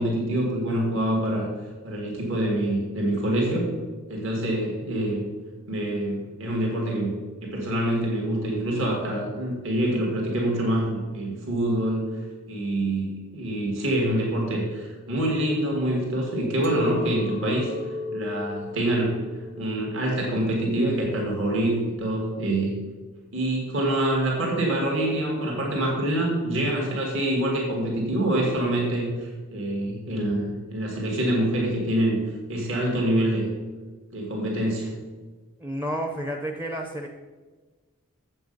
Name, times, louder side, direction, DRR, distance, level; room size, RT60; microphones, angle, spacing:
voice 1, 0.0-1.5 1.8-3.7 4.1-5.2 5.7-7.1 7.4-12.0 12.5-17.7 18.1-19.2 19.6-22.7 23.3-32.2 32.5-33.5 34.1-34.9, right 1 dB, 60° right, -1 dB, 2.0 m, -25 dB
Chink clink, 16.6-21.8, left 3 dB, 40° right, 0.9 m, -35 dB
voice 2, 35.6-37.1, equal, 10° right, 2 dB, 0.6 m, -30 dB
7.8 x 7.7 x 5.3 m, 1.3 s
head